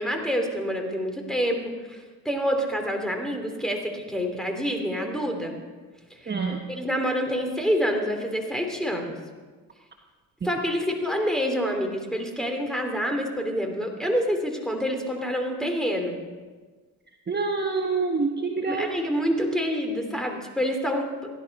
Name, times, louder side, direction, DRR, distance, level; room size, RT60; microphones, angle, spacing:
voice 1, 0.0-1.6 1.9-2.0 2.2-5.6 6.2-6.3 6.7-9.2 10.4-16.2 18.6-21.1, equal, ahead, 3 dB, 2.9 m, -27 dB
voice 2, 6.3-6.6 17.3-18.9, right 4 dB, 30° right, 2 dB, 1.3 m, -26 dB
16.0 x 11.5 x 5.4 m, 1.4 s
cardioid pair, 85°, 36 cm